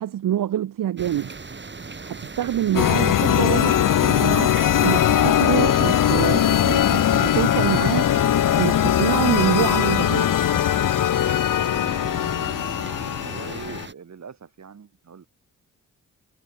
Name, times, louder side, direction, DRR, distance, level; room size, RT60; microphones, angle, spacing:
voice 1, 0.0-1.4 2.0-8.1 8.5-10.3, right 11 dB, 75° right, 1.2 m, -26 dB
sound 1, 1.0-13.9, right 4 dB, 35° right, 3.4 m, -38 dB
sound 2, 2.7-13.9, left 10 dB, 70° left, 1.2 m, -20 dB
voice 2, 12.1-12.5 13.2-15.3, right 6 dB, 55° right, 4.1 m, -42 dB
cardioid pair, 65°, 33 cm